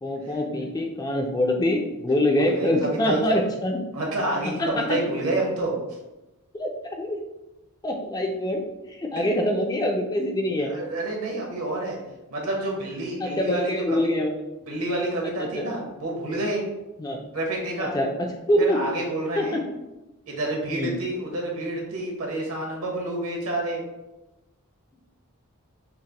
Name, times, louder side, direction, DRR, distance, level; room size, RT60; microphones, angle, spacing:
voice 1, 0.0-3.8 4.6-5.0 6.5-7.2 7.8-10.7 13.2-14.3 15.4-15.7 17.0-17.2 17.8-18.9 19.4-19.6 20.7-21.0, left 1 dB, 15° left, 2 dB, 0.3 m, -25 dB
voice 2, 2.4-3.4 3.9-5.8 9.2-9.3 10.6-12.0 12.3-14.1 14.6-16.7 17.3-17.9 18.6-19.6 20.3-23.8, right 2 dB, 70° right, -1 dB, 1.0 m, -28 dB
5.6 x 2.1 x 2.9 m, 1.0 s
head